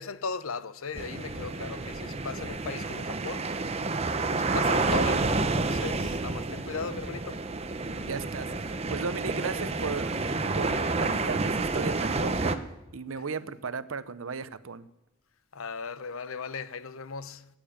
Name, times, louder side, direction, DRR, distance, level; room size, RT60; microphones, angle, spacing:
voice 1, 0.0-3.5 4.3-7.4 15.5-17.5, left 4 dB, 90° left, 0.8 m, -37 dB
sound 1, 1.0-12.6, right 3 dB, 30° right, 0.8 m, -29 dB
voice 2, 8.0-10.1 10.5-12.6 12.9-14.9, right 5 dB, 85° right, 0.8 m, -35 dB
17.0 x 9.0 x 8.7 m
head